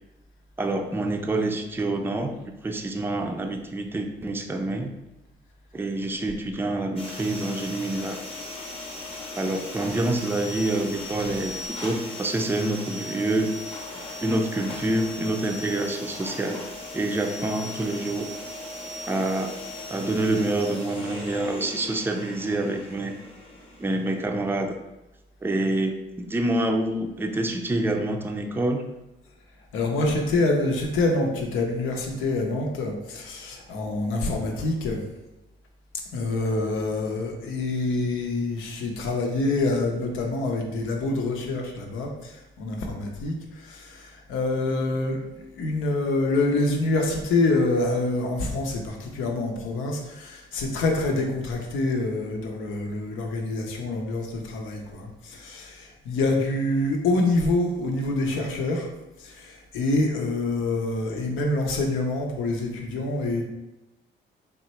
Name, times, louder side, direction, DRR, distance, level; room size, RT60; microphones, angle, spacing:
voice 1, 0.6-4.9 5.7-8.2 9.4-13.5 14.2-16.6 16.9-18.3 19.1-19.5 19.9-23.1 23.8-24.7 25.4-28.8, right 2 dB, 10° right, 4 dB, 0.4 m, -27 dB
sound 1, 7.0-24.2, left 2 dB, 30° left, 0.9 m, -38 dB
voice 2, 29.7-35.0 36.1-58.9 59.2-63.4, left 2 dB, 90° left, 1 dB, 0.7 m, -26 dB
3.7 x 2.1 x 4.2 m, 1.0 s
cardioid pair, 90°, 20 cm